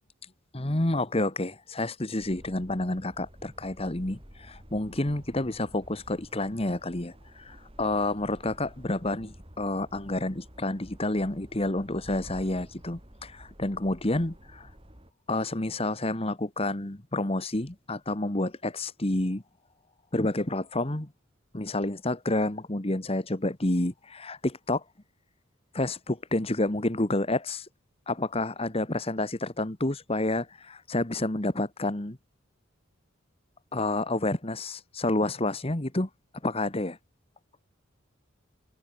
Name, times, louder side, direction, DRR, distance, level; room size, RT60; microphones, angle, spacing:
voice 1, 0.5-14.7 15.3-19.4 20.1-21.1 21.5-24.8 25.7-27.7 28.1-32.2 33.7-36.1 36.4-37.0, left 2 dB, 30° left, 1.6 m, -29 dB
sound 1, 2.2-15.1, equal, 30° right, 5.8 m, -50 dB
head